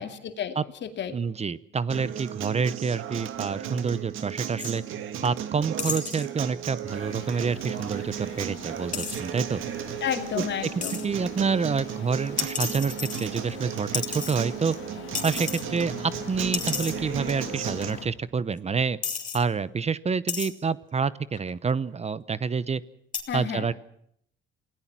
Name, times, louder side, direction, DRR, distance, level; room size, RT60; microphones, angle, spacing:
voice 1, 0.0-1.2 10.0-11.0 23.3-23.7, left 8 dB, 65° left, 7 dB, 2.5 m, -32 dB
voice 2, 1.1-4.8 5.2-9.6 10.3-10.7 11.0-14.7 15.2-19.0 19.3-22.8 23.3-23.7, right 5 dB, 30° right, 18 dB, 0.8 m, -28 dB
Acoustic guitar, 1.9-17.9, right 10 dB, 85° right, 1.8 m, -35 dB
sound 1, 4.6-4.8 5.8-6.3 8.9-9.2 10.8-11.1 12.4-13.6 13.9-14.7 15.2-15.7 16.0-16.1 16.5-17.0 17.9-18.0 18.6-18.7 19.0-19.4 20.3-20.5 21.4-21.7 23.1-23.2, left 5 dB, 40° left, 3.2 m, -32 dB
sound 2, 6.9-18.0, left 9 dB, 80° left, 2.7 m, -43 dB
28.0 x 18.5 x 6.0 m, 0.68 s
cardioid pair, 90°, 20 cm